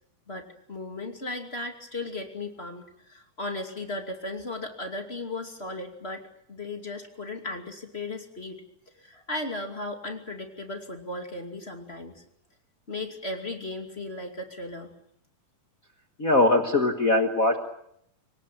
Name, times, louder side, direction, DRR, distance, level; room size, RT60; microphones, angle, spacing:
voice 1, 0.3-8.6 9.0-12.2 12.9-14.9, left 2 dB, 20° left, 4 dB, 2.3 m, -36 dB
voice 2, 16.2-17.6, left 2 dB, 85° left, 5 dB, 0.7 m, -21 dB
25.5 x 18.0 x 9.1 m, 0.74 s
omnidirectional pair, 4.1 m